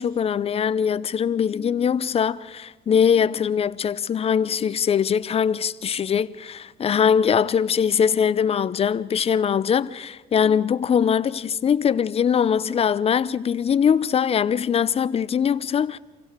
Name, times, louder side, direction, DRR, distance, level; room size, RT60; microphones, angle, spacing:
voice 1, 0.0-16.0, left 7 dB, 35° left, 0.7 m, -22 dB
25.5 x 16.0 x 6.7 m
cardioid pair, 110°, 17 cm